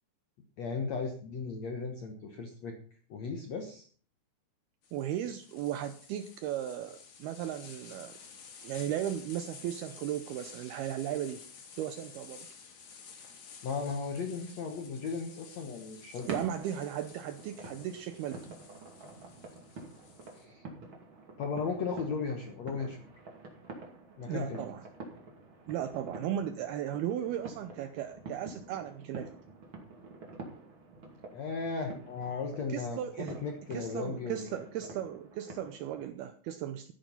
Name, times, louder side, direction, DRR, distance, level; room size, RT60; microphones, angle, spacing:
voice 1, 0.6-2.8 3.1-3.9 13.6-16.3 20.3-20.6 21.4-23.0 24.2-24.6 31.3-34.6, left 4 dB, 85° left, 3 dB, 1.5 m, -36 dB
sound 1, 4.8-20.4, left 6 dB, 55° left, 3.8 m, -52 dB
voice 2, 4.9-8.2 8.6-11.4 11.8-12.5 16.3-18.6 24.3-24.8 25.7-29.3 32.7-33.4 33.7-36.9, right 11 dB, 85° right, 10 dB, 2.2 m, -36 dB
sound 2, 16.2-36.1, right 3 dB, 35° right, 2.3 m, -48 dB
14.0 x 10.0 x 5.7 m, 0.43 s
omnidirectional pair, 5.5 m